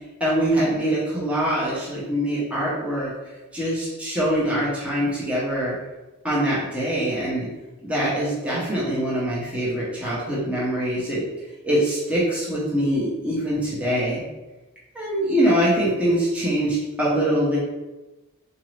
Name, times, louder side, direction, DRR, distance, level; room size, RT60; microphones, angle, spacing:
voice 1, 0.2-3.1 3.5-5.7 6.2-7.5 7.8-11.2 11.6-14.2 14.9-17.6, right 1 dB, 5° right, -8 dB, 0.9 m, -23 dB
3.9 x 2.8 x 3.2 m, 1.1 s
head